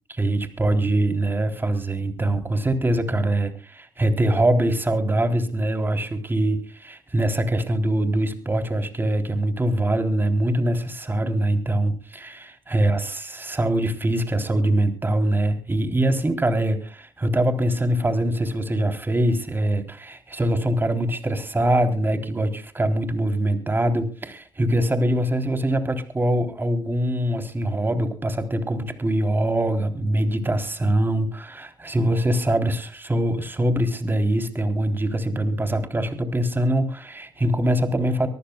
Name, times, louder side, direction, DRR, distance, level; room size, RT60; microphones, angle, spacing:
voice 1, 0.2-38.3, right 1 dB, 20° right, 6 dB, 3.7 m, -23 dB
24.5 x 14.5 x 2.4 m, 0.37 s
supercardioid pair, 60°, 10 cm